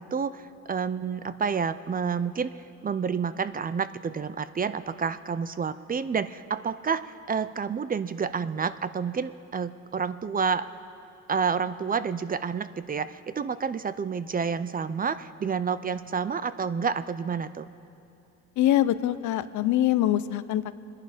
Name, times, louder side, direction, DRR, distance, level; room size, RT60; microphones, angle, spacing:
voice 1, 0.0-2.5 2.8-10.6 11.3-17.7, right 6 dB, 30° right, 14 dB, 0.5 m, -29 dB
voice 2, 18.6-20.7, left 13 dB, 75° left, 14 dB, 0.6 m, -24 dB
24.5 x 10.5 x 5.0 m, 2.7 s
cardioid pair, 90°, 30 cm